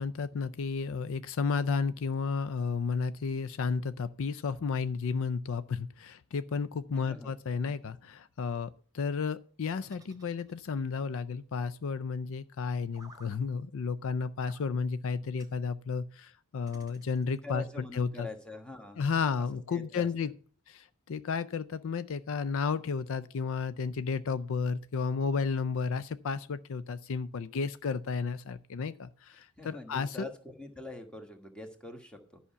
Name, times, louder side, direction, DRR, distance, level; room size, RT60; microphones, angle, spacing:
voice 1, 0.0-18.3 19.0-20.3 20.7-30.3, left 5 dB, 65° left, 0.4 m, -32 dB
voice 2, 6.9-7.3 17.4-19.0 19.7-20.1 29.6-32.4, left 2 dB, 5° left, 1.4 m, -44 dB
sound 1, 9.8-11.0 12.9-13.4 14.4-14.7 15.4-15.6 16.7-17.5, right 2 dB, 15° right, 1.3 m, -56 dB
11.0 x 5.7 x 6.9 m
head